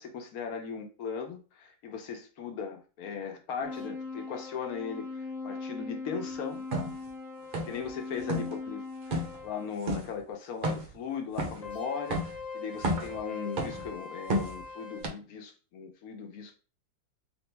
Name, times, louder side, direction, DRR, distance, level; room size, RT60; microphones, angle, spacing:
voice 1, 0.0-6.6 7.7-16.5, left 6 dB, 70° left, 1.2 m, -38 dB
sound 1, 3.6-9.7 11.6-15.0, left 4 dB, ahead, 0.9 m, -40 dB
sound 2, 6.7-6.9 7.5-7.9 8.2-8.5 9.1-9.4 9.9-10.1 10.6-11.0 11.4-11.7 12.1-12.4 12.8-13.2 13.6-13.9 14.3-14.6 15.0-15.1, right 1 dB, 50° right, 0.6 m, -31 dB
3.3 x 3.0 x 3.3 m
omnidirectional pair, 1.7 m